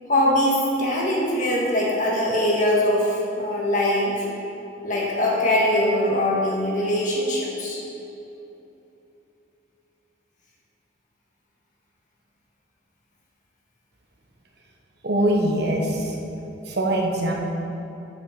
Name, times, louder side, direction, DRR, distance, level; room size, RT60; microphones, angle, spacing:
voice 1, 0.1-4.3 4.8-7.8, left 1 dB, 45° left, -4 dB, 1.7 m, -22 dB
voice 2, 15.0-16.1 16.7-17.3, right 1 dB, 60° right, -1 dB, 1.2 m, -22 dB
8.1 x 5.9 x 6.5 m, 3.0 s
head